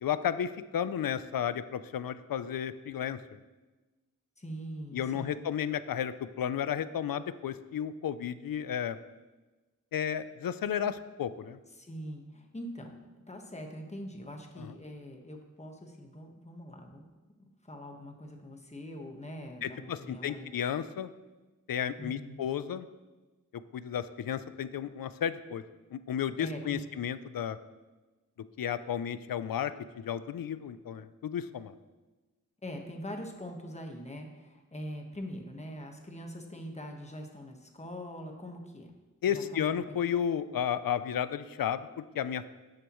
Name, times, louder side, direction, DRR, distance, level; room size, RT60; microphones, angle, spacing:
voice 1, 0.0-3.2 4.9-9.0 9.9-11.6 14.6-14.7 19.6-21.1 21.7-22.9 23.7-25.6 25.9-27.6 28.6-31.7 39.2-42.5, left 9 dB, 85° left, 13 dB, 0.5 m, -33 dB
voice 2, 4.4-5.3 11.8-12.9 13.3-17.0 17.6-20.5 22.0-22.4 26.4-26.8 32.6-38.9 39.3-40.0, equal, 20° left, 2 dB, 1.3 m, -43 dB
11.5 x 8.1 x 3.1 m, 1.2 s
wide cardioid pair, 80°, 33 cm